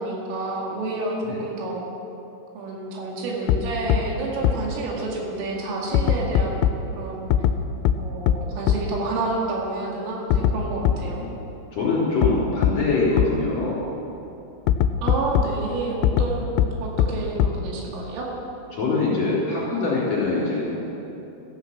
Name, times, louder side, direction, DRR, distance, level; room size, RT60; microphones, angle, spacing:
voice 1, 0.0-1.9 2.5-6.6 6.9-7.3 8.0-11.2 15.0-16.5 16.8-18.3, right 2 dB, 85° right, -2 dB, 4.7 m, -29 dB
sound 1, 3.5-3.6 3.9-4.0 4.4-4.5 5.9-6.7 7.3-7.5 7.9-8.0 8.3-8.4 8.7-8.8 10.3-10.5 10.9-11.0 12.2-12.3 12.6-12.7 13.2-13.3 14.7-15.5 16.0-16.3 16.6-16.7 17.0-17.1 17.4-17.5, left 10 dB, 85° left, 3.1 m, -18 dB
voice 2, 10.9-11.3 11.7-13.8 18.7-20.7, left 3 dB, 35° left, -7 dB, 4.4 m, -24 dB
13.5 x 11.0 x 7.3 m, 2.9 s
omnidirectional pair, 5.6 m